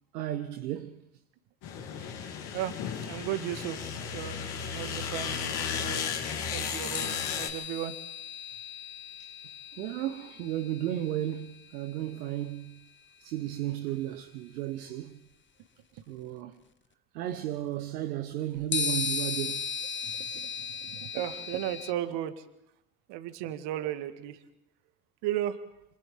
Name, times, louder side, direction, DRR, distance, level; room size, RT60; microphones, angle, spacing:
voice 1, 0.1-1.0 9.8-12.8 13.2-15.2 16.1-16.6 17.1-19.7, right 13 dB, 75° right, 1.2 m, -34 dB
sound 1, 1.6-7.5, left 6 dB, 55° left, 3.0 m, -34 dB
voice 2, 2.2-4.4 4.7-7.9 20.0-22.4 23.1-24.4 25.2-25.6, right 12 dB, 60° right, 1.9 m, -36 dB
sound 2, 6.9-12.6 13.9-14.0 18.7-21.9, left 6 dB, 25° left, 1.1 m, -36 dB
27.0 x 26.5 x 3.7 m
hypercardioid pair, 65°, 48 cm